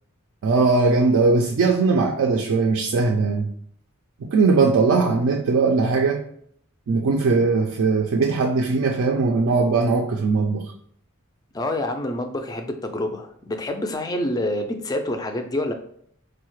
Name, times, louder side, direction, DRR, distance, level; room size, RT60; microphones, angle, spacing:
voice 1, 0.4-3.5 4.2-6.2 6.9-10.7, right 4 dB, 65° right, 2 dB, 0.3 m, -20 dB
voice 2, 11.5-15.7, left 1 dB, 15° left, 5 dB, 0.3 m, -27 dB
4.6 x 2.1 x 3.0 m, 0.65 s
head